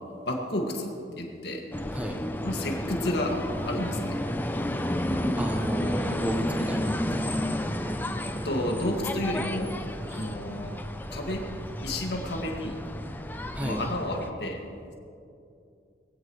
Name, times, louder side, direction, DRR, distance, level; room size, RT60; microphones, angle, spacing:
voice 1, 0.2-1.6 2.4-4.2 8.4-9.8 10.1-10.8 11.1-11.5 11.8-12.8 13.6-14.6, left 1 dB, 65° left, 1 dB, 2.0 m, -31 dB
sound 1, 1.7-14.3, left 1 dB, 10° left, 0.5 m, -31 dB
voice 2, 5.3-7.0 10.1-10.3 13.5-13.8, equal, 10° right, 2 dB, 1.1 m, -33 dB
20.0 x 16.5 x 3.2 m, 2.5 s
head